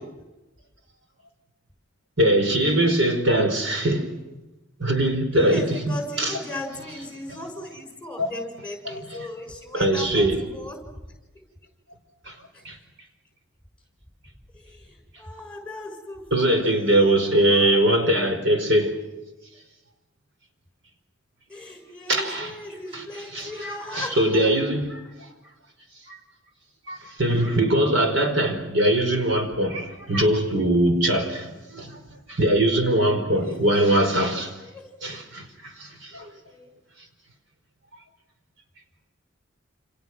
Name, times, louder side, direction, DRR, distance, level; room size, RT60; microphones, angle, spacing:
voice 1, 2.2-4.1 4.8-6.4 7.3-7.4 8.2-8.3 8.8-9.2 9.7-10.4 12.2-12.3 12.6-12.8 16.3-19.0 22.1-22.5 22.9-25.0 26.1-26.2 26.9-32.0 32.3-34.5 35.0-36.3, right 1 dB, 65° right, 4.9 m, -22 dB
voice 2, 5.3-10.8 12.5-12.6 14.5-16.8 17.3-17.7 21.5-24.5 33.3-33.8 34.6-34.9 36.5-36.7, left 1 dB, 5° left, 6.5 m, -38 dB
29.5 x 29.0 x 6.2 m
head